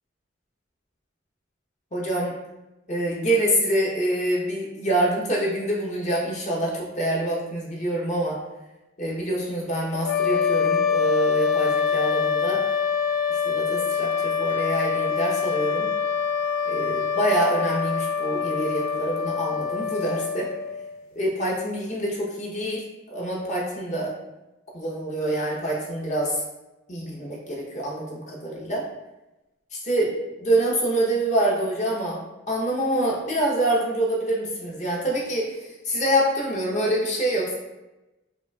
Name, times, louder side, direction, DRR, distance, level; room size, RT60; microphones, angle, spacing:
voice 1, 1.9-2.3 2.9-8.4 9.0-12.6 13.3-15.9 16.7-20.5 21.2-22.8 23.1-24.1 24.7-26.4 26.9-28.8 29.7-30.1 30.4-32.2 32.5-35.5 35.8-37.6, right 1 dB, 35° left, -3 dB, 0.8 m, -26 dB
sound 1, 10.0-21.0, left 7 dB, 90° left, 0.3 m, -25 dB
5.0 x 2.4 x 2.3 m, 1.0 s
head